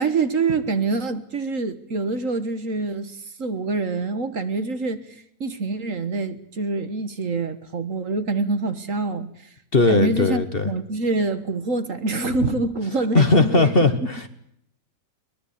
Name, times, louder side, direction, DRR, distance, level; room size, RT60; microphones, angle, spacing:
voice 1, 0.0-9.5 9.8-13.7, right 3 dB, 50° right, 11 dB, 1.7 m, -26 dB
voice 2, 9.7-10.7 13.1-14.3, left 3 dB, 35° left, 10 dB, 1.4 m, -18 dB
22.5 x 20.0 x 8.6 m, 0.73 s
omnidirectional pair, 1.8 m